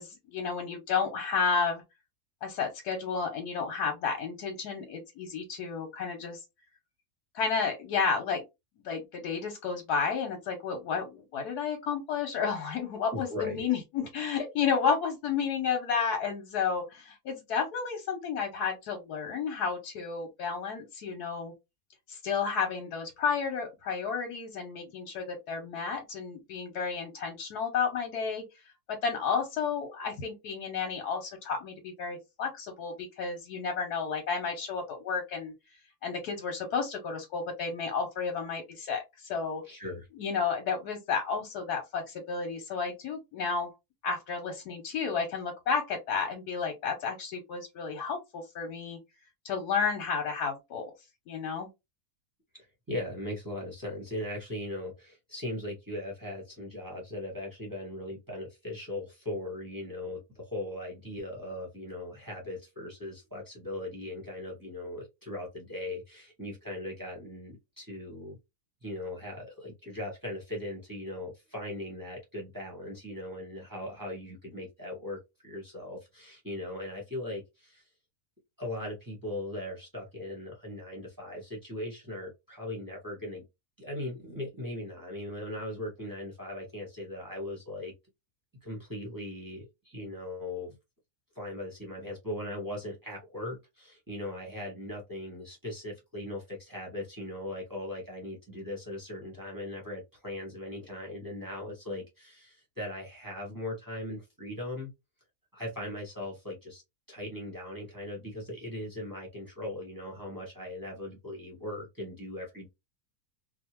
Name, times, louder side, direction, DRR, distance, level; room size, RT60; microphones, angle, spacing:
voice 1, 0.0-1.8 2.4-6.4 7.3-8.4 8.8-21.5 22.1-28.4 28.9-35.5 36.0-39.6 40.2-43.7 44.0-49.0 49.4-50.9 51.3-51.7, left 5 dB, 80° left, 1.3 m, -32 dB
voice 2, 13.1-13.6 39.6-40.1 52.5-68.4 68.8-77.8 78.6-83.4 83.8-87.9 88.6-90.7 91.3-104.9 105.5-106.8 107.1-112.7, left 1 dB, 15° right, 0.9 m, -39 dB
2.8 x 2.3 x 2.9 m
omnidirectional pair, 1.6 m